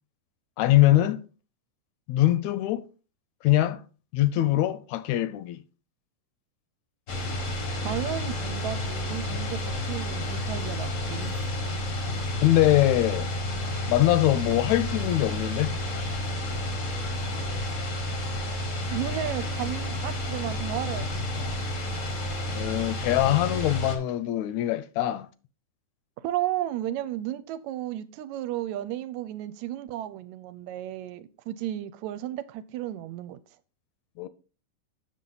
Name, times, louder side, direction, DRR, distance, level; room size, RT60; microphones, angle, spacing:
voice 1, 0.6-1.2 2.1-2.8 3.4-3.8 4.1-5.6 12.4-13.3 13.9-15.8 22.5-25.3 34.2-34.3, left 14 dB, 80° left, 1.8 m, -23 dB
sound 1, 7.1-24.0, left 1 dB, 55° left, 0.8 m, -31 dB
voice 2, 7.7-11.3 18.9-21.6 26.2-33.4, right 12 dB, 80° right, 1.9 m, -33 dB
7.8 x 6.6 x 3.9 m
omnidirectional pair, 3.3 m